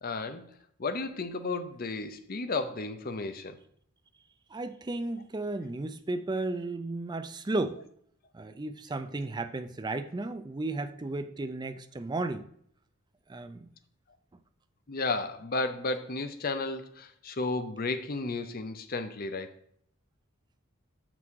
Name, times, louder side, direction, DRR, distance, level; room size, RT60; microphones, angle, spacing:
voice 1, 0.0-0.5 0.8-3.6 14.9-19.5, left 3 dB, 40° left, 0.7 m, -33 dB
voice 2, 4.5-7.8 8.3-12.4 13.3-13.7, right 2 dB, 20° right, 0.4 m, -34 dB
6.2 x 6.0 x 4.7 m
head